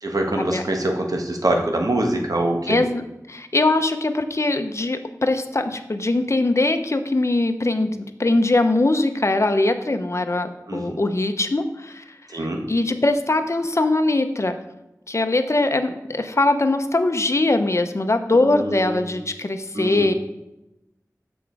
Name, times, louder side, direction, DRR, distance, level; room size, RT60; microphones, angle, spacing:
voice 1, 0.0-2.8 10.7-11.0 12.3-12.7 18.3-19.2 19.7-20.1, right 1 dB, 70° right, 2 dB, 1.2 m, -24 dB
voice 2, 2.7-3.0 3.3-14.6 15.1-20.1, left 2 dB, 50° left, 8 dB, 0.7 m, -21 dB
7.1 x 6.2 x 4.7 m, 0.95 s
wide cardioid pair, 50°, 6 cm